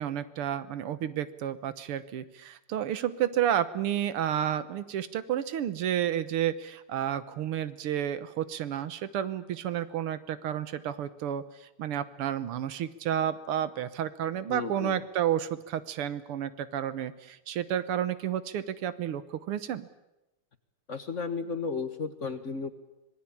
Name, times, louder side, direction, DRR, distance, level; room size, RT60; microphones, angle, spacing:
voice 1, 0.0-19.9, right 10 dB, 85° right, 14 dB, 2.0 m, -31 dB
voice 2, 14.5-15.1 20.9-22.7, left 4 dB, 40° left, 9 dB, 1.3 m, -34 dB
26.0 x 19.5 x 8.6 m, 0.95 s
omnidirectional pair, 2.4 m